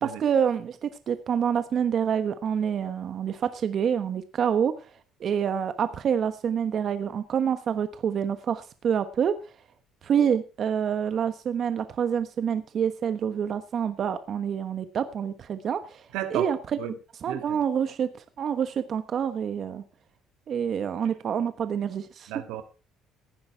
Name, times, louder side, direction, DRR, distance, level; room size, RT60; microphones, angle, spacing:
voice 1, 0.0-4.7 5.2-9.3 10.0-16.0 16.3-16.6 17.2-18.1 18.4-19.8 20.5-22.3, right 8 dB, 50° right, 1.2 m, -27 dB
voice 2, 16.1-16.5 16.8-16.9 17.3-17.6 22.3-22.6, right 11 dB, 85° right, 1.7 m, -33 dB
16.0 x 9.6 x 4.6 m
cardioid pair, 100°, 0 cm